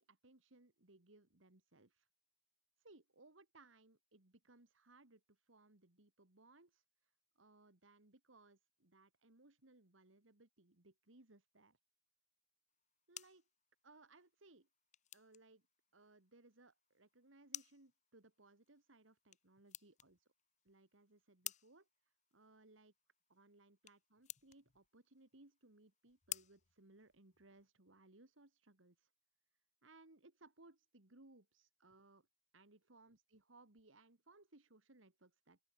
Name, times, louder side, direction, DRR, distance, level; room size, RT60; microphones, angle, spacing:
voice 1, 0.0-2.1 2.8-11.8 13.1-13.5 13.8-14.7 15.1-15.6 15.9-20.3 20.6-21.9 22.3-22.9 23.3-29.1 29.8-32.3 32.5-35.6, right 2 dB, 85° right, 2.4 m, -66 dB
sound 1, 12.7-27.6, left 12 dB, 40° left, 0.8 m, -55 dB
open air
head